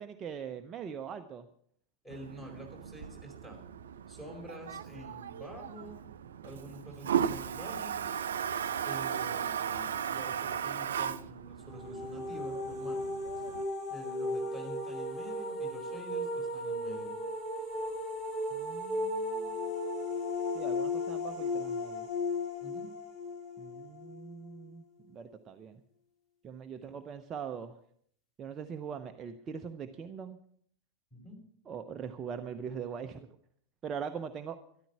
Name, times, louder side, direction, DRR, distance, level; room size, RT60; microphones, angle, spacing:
voice 1, 0.0-1.5 18.5-19.7 20.5-22.1 23.6-25.8 26.4-27.8 28.4-30.4 31.7-33.4 33.8-34.6, right 7 dB, 25° right, 7 dB, 0.7 m, -42 dB
voice 2, 2.0-3.6 4.1-6.0 6.4-8.1 8.8-13.0 13.4-13.5 13.9-17.2 22.6-22.9 31.1-31.4, equal, 5° left, -1 dB, 4.8 m, -47 dB
Toilet flush, 2.1-13.6, right 8 dB, 65° right, 0.5 m, -36 dB
sound 1, 11.7-24.5, left 2 dB, 30° left, 3.5 m, -35 dB
13.0 x 11.5 x 5.8 m, 0.64 s
figure-of-eight pair, 90°, 0 cm